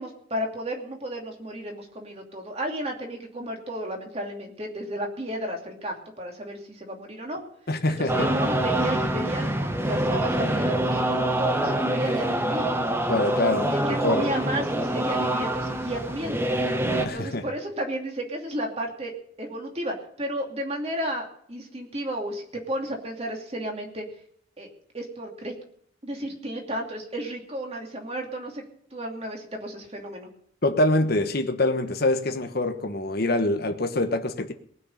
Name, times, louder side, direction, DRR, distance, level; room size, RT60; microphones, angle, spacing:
voice 1, 0.0-7.4 8.0-12.7 13.7-16.5 17.0-19.1 19.4-24.0 24.6-24.7 24.9-25.5 26.0-28.6 28.9-30.3, right 1 dB, 30° right, 2.7 m, -33 dB
voice 2, 7.7-8.3 13.1-14.3 17.0-17.5 30.6-34.5, left 2 dB, 50° left, 1.3 m, -25 dB
sound 1, 8.1-17.1, right 1 dB, 10° right, 1.0 m, -25 dB
19.0 x 6.4 x 8.8 m
head